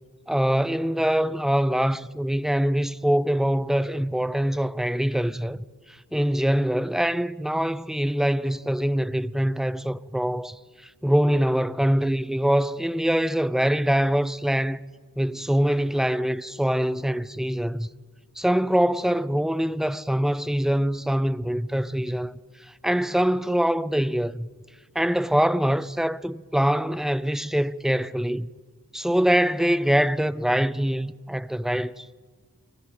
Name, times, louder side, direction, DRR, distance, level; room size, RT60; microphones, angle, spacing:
voice 1, 0.3-14.9 15.2-17.9 18.4-22.3 22.6-24.5 24.9-28.5 28.9-32.1, equal, ahead, 0.6 m, -24 dB
23.0 x 17.0 x 8.0 m
wide cardioid pair, 65°, 32 cm